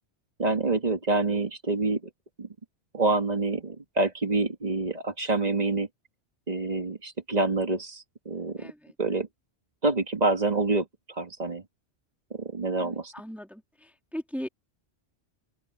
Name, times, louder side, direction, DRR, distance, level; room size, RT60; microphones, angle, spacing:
voice 1, 0.4-2.0 2.4-2.5 2.9-5.9 6.5-8.7 9.0-9.3 9.8-11.6 12.3-13.1, right 2 dB, 40° right, 2.0 m, -27 dB
voice 2, 8.6-9.0 12.8-14.5, equal, ahead, 2.2 m, -39 dB
open air
omnidirectional pair, 1.1 m